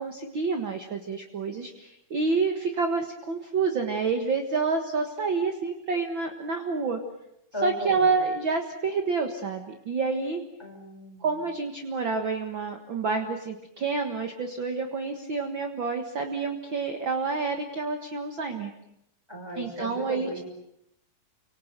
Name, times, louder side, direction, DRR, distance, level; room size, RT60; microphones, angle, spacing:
voice 1, 0.0-7.0 7.6-10.4 11.2-18.7 19.6-20.3, right 4 dB, 50° right, 5 dB, 1.5 m, -28 dB
voice 2, 7.5-8.2 10.6-11.4 19.3-20.4, equal, 5° left, 1 dB, 5.9 m, -36 dB
30.0 x 25.5 x 6.7 m, 0.80 s
omnidirectional pair, 4.4 m